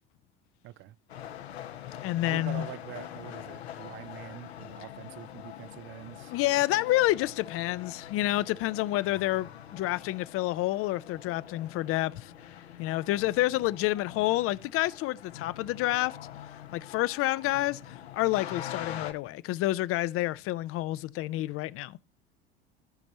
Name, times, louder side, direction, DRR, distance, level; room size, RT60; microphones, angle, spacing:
voice 1, 0.6-1.0 2.3-6.4, right 15 dB, 40° right, 0.4 m, -44 dB
sound 1, 1.1-19.1, left 10 dB, 85° left, 1.0 m, -44 dB
voice 2, 2.0-2.7 6.3-12.3 12.8-16.2 16.7-22.0, left 16 dB, 45° left, 0.5 m, -29 dB
15.5 x 5.3 x 2.8 m
hypercardioid pair, 80°, 31 cm